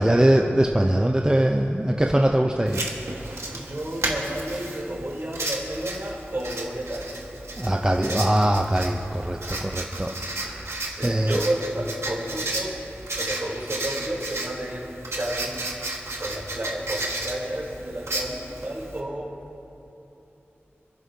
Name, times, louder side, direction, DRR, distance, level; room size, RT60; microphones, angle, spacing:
voice 1, 0.0-2.8 7.6-10.6 11.0-11.4, right 1 dB, 15° right, 2 dB, 0.7 m, -22 dB
Writing, 2.7-19.0, right 2 dB, 80° right, 1.6 m, -33 dB
voice 2, 3.5-7.2 9.9-10.0 10.8-12.8 13.1-19.3, right 1 dB, 50° right, -4 dB, 3.6 m, -32 dB
26.5 x 11.5 x 2.8 m, 3.0 s
cardioid pair, 40°, 5 cm